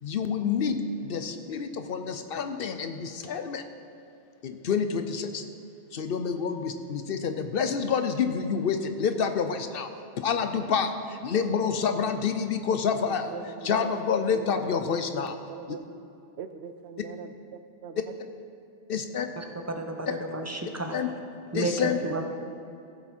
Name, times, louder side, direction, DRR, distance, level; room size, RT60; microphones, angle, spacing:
voice 1, 0.0-3.6 4.4-5.4 5.9-9.9 10.2-15.4 15.7-15.8 18.9-19.3 20.9-21.1 21.5-22.0, left 6 dB, 65° left, 8 dB, 0.8 m, -28 dB
voice 2, 13.3-14.0 14.3-15.8 16.4-18.0 22.0-22.2, right 6 dB, 90° right, 9 dB, 0.9 m, -41 dB
voice 3, 19.4-21.0 21.5-21.7 22.0-22.2, right 2 dB, 15° right, 4 dB, 0.7 m, -32 dB
15.0 x 7.0 x 4.3 m, 2.6 s
omnidirectional pair, 1.1 m